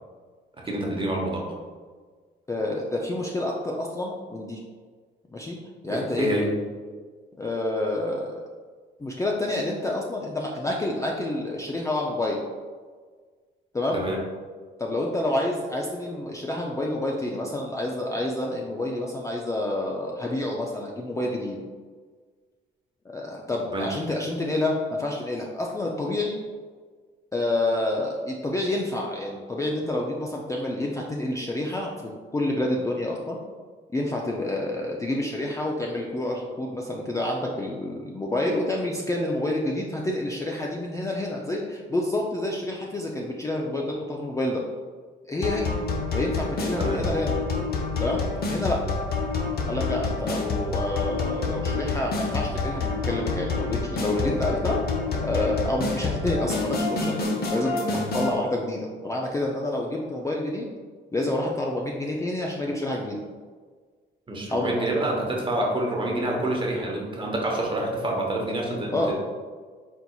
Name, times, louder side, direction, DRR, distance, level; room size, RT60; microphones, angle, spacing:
voice 1, 0.6-1.4 5.9-6.5 13.9-14.2 23.7-23.9 46.8-47.0 64.3-69.1, right 1 dB, 25° right, -1 dB, 0.9 m, -27 dB
voice 2, 2.5-4.6 5.3-5.6 5.8-6.3 7.4-8.4 9.0-12.4 13.7-14.0 14.8-21.6 23.1-26.4 27.3-31.9 32.3-33.4 33.9-44.6 45.3-45.7 46.1-47.3 48.0-48.2 48.5-48.8 49.7-54.8 55.2-60.7 61.1-63.2 64.5-64.9 68.9-69.1, left 1 dB, 15° left, -1 dB, 0.4 m, -28 dB
sound 1, 45.4-58.3, left 3 dB, 50° left, 0.7 m, -28 dB
4.3 x 3.9 x 2.3 m, 1.5 s
cardioid pair, 90°, 20 cm